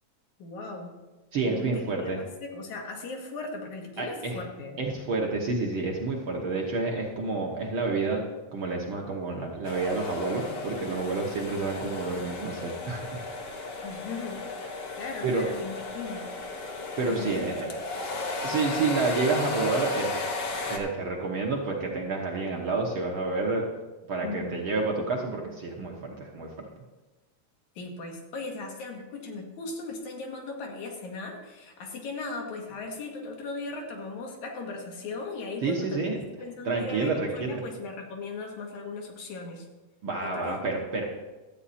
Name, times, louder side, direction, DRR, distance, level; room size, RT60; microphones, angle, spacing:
voice 1, 0.4-0.9 1.4-1.7 2.0-4.8 13.8-14.4 15.0-16.2 17.1-17.3 24.2-24.6 27.8-39.7 40.3-40.8, left 3 dB, 80° left, 1 dB, 2.9 m, -38 dB
voice 2, 1.3-2.2 4.0-4.4 4.8-8.2 8.5-13.2 15.2-15.5 17.0-17.7 18.4-20.2 20.7-23.7 24.1-26.7 35.6-36.2 36.6-37.6 40.0-41.0, right 3 dB, 60° right, 0 dB, 1.5 m, -29 dB
sound 1, 9.6-20.8, left 3 dB, 60° left, 1.2 m, -35 dB
12.5 x 8.4 x 4.2 m, 1.2 s
omnidirectional pair, 3.3 m